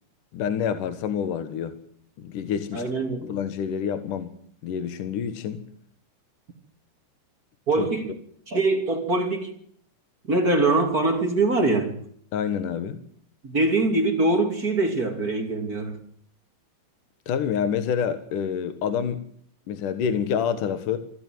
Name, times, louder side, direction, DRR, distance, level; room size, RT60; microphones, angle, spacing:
voice 1, 0.3-1.8 2.2-2.8 3.2-4.3 4.6-5.6 7.8-7.9 12.3-13.0 17.3-19.2 19.7-21.0, left 7 dB, 60° left, 2.6 m, -27 dB
voice 2, 2.7-3.3 7.7-8.1 8.5-9.5 10.3-11.9 13.4-16.0, right 2 dB, 25° right, 2.6 m, -23 dB
26.0 x 14.5 x 9.4 m
omnidirectional pair, 5.1 m